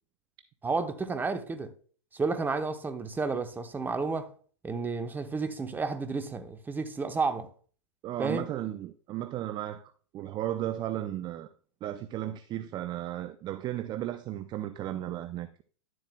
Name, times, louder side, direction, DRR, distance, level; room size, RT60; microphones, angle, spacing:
voice 1, 0.6-1.7 2.1-4.3 4.6-7.5 8.2-8.5, right 4 dB, 10° right, 0.9 m, -31 dB
voice 2, 8.0-11.5 11.8-15.6, right 12 dB, 30° right, 0.4 m, -35 dB
11.5 x 7.6 x 2.2 m
hypercardioid pair, 110°, 15 cm